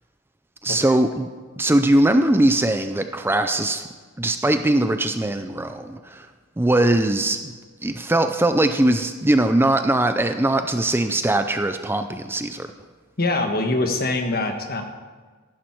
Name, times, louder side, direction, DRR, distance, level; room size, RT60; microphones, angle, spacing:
voice 1, 0.6-1.3 1.6-3.9 4.2-6.3 6.6-7.5 7.8-12.7, right 1 dB, 10° right, 8 dB, 0.5 m, -20 dB
voice 2, 13.2-14.8, left 2 dB, 45° left, 5 dB, 1.4 m, -23 dB
14.5 x 11.5 x 4.5 m, 1.4 s
head